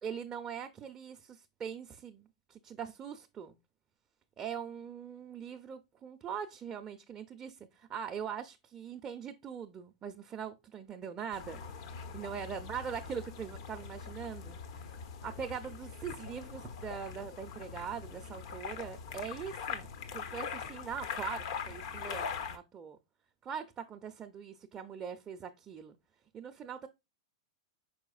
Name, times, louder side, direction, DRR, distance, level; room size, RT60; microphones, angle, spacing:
voice 1, 0.0-3.6 4.4-11.6 12.1-14.6 15.2-19.9 20.1-23.0 23.4-26.0 26.3-26.9, right 7 dB, 25° right, 0.4 m, -42 dB
sound 1, 11.3-22.6, left 6 dB, 60° left, 0.7 m, -42 dB
4.9 x 4.7 x 2.3 m
hypercardioid pair, 105°, 3 cm